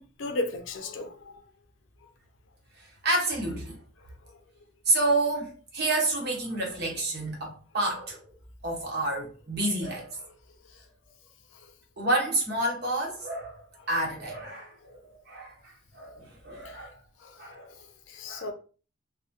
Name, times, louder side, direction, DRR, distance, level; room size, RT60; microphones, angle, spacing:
voice 1, 0.0-1.4 4.0-4.4 10.7-10.8 11.5-11.7 16.6-16.9 17.2-18.5, left 2 dB, 75° left, 0.5 m, -37 dB
voice 2, 2.8-3.8 4.9-8.2 8.6-10.2 12.0-17.0 17.4-17.7 18.3-18.5, right 2 dB, 60° right, 1.0 m, -29 dB
2.2 x 2.1 x 2.7 m
head